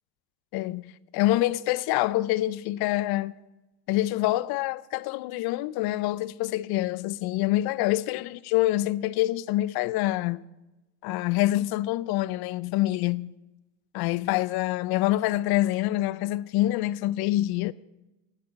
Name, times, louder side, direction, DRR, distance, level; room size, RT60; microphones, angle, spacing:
voice 1, 0.5-3.3 3.9-10.4 11.0-13.3 13.9-17.7, left 16 dB, 50° left, 0.6 m, -26 dB
11.5 x 7.7 x 8.1 m
supercardioid pair, 95°, 50 cm